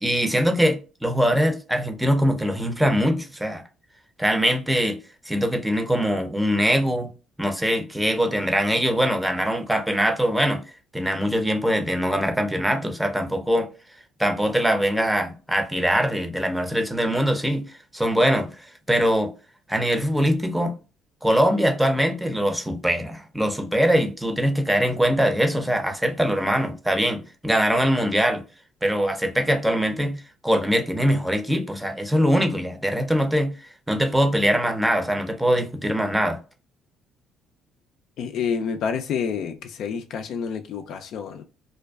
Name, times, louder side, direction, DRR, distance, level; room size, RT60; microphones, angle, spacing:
voice 1, 0.0-3.6 4.2-5.0 5.3-7.1 7.4-10.6 10.9-13.7 14.2-19.3 19.7-20.8 21.2-28.4 28.8-36.4, equal, 5° right, 0.6 m, -22 dB
voice 2, 38.2-41.5, left 6 dB, 65° left, 0.3 m, -28 dB
2.5 x 2.2 x 2.3 m
hypercardioid pair, 65°, 0 cm